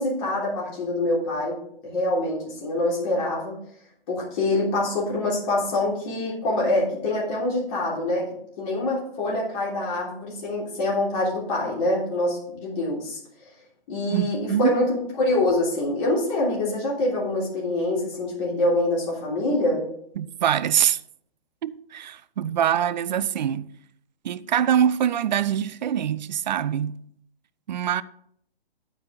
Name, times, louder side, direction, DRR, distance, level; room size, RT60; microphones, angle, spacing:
voice 1, 0.0-3.6 4.1-8.3 8.6-13.2 13.9-14.9 15.2-19.8, left 2 dB, 35° left, 3.3 m, -25 dB
voice 2, 14.1-14.8 20.2-21.0 21.6-23.7 24.2-27.0 27.7-28.0, right 9 dB, 45° right, 0.5 m, -24 dB
9.0 x 8.7 x 3.9 m
figure-of-eight pair, 125°, 30 cm